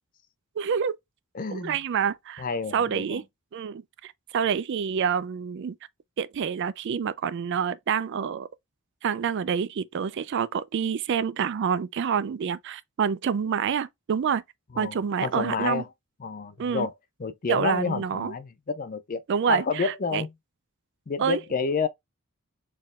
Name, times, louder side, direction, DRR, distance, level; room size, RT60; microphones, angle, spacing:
voice 1, 0.6-1.0 1.5-2.5 2.7-3.2 3.5-5.8 6.2-8.5 9.0-14.4 14.8-15.8 16.6-16.9 17.5-18.3 19.3-20.2 21.2-21.4, right 7 dB, 50° right, 0.3 m, -27 dB
voice 2, 1.3-1.8 2.4-3.2 14.7-15.8 16.2-16.9 17.2-19.2 19.5-20.3 21.1-21.9, left 5 dB, 40° left, 0.5 m, -29 dB
4.3 x 3.6 x 2.3 m
head